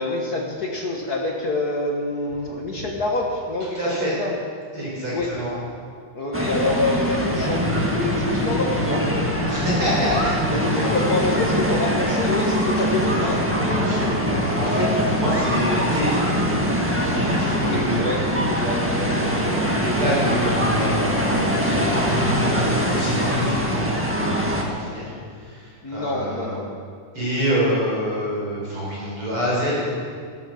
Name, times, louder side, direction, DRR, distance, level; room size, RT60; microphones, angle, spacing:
voice 1, 0.0-4.3 5.1-5.3 6.1-9.1 10.5-13.9 17.1-17.2 17.6-18.2 18.4-19.6 25.8-26.7, left 2 dB, 60° left, -1 dB, 1.0 m, -26 dB
voice 2, 3.6-4.1 4.7-5.5 9.5-10.9 13.8-14.0 14.6-16.5 17.1-18.0 19.7-22.1 22.4-26.5 27.1-29.8, equal, 40° right, -6 dB, 5.2 m, -26 dB
sound 1, 6.3-24.6, equal, 20° right, 0.3 m, -22 dB
14.0 x 12.5 x 6.5 m, 2.1 s
omnidirectional pair, 3.8 m